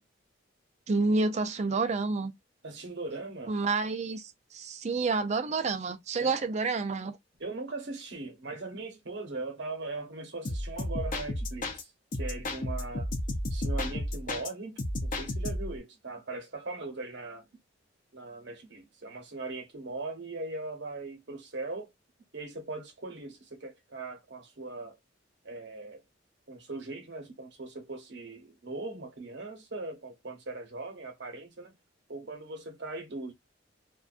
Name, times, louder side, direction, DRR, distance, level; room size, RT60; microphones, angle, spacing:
voice 1, 0.9-2.3 3.5-7.2, right 3 dB, 40° right, 0.4 m, -29 dB
voice 2, 2.6-3.5 6.2-6.4 7.4-13.1 13.5-17.5 18.1-21.9 22.3-25.0 25.4-26.0 26.5-31.7 32.1-33.3, right 3 dB, 70° right, 0.9 m, -40 dB
sound 1, 10.4-11.8 12.1-14.5 14.8-15.8, left 1 dB, 45° left, 0.6 m, -33 dB
2.5 x 2.2 x 2.4 m
head